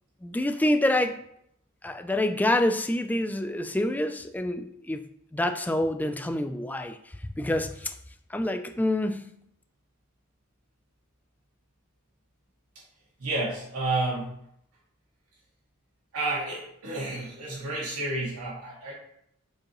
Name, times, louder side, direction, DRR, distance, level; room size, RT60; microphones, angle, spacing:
voice 1, 0.2-1.2 1.8-5.0 5.3-7.0 7.4-7.9 8.3-9.3, left 1 dB, 10° left, 0.3 m, -27 dB
voice 2, 13.2-14.3 16.1-18.9, right 2 dB, 90° right, 2.1 m, -30 dB
7.1 x 5.1 x 3.0 m
head